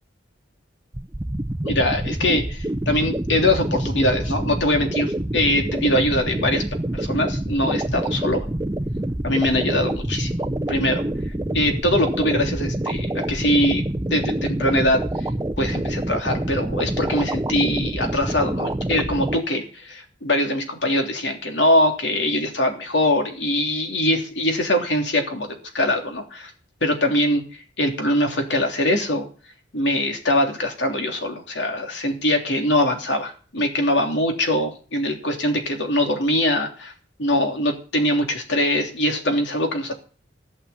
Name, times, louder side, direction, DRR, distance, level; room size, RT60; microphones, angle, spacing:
sound 1, 0.9-19.4, right 1 dB, 15° right, 0.7 m, -27 dB
voice 1, 1.6-6.6 6.9-8.4 9.2-10.4 10.7-11.0 11.5-13.8 14.1-15.0 15.6-26.5 26.8-29.2 29.7-36.9 37.2-39.9, left 1 dB, 70° left, 4 dB, 3.2 m, -22 dB
16.5 x 6.9 x 8.4 m, 0.39 s
head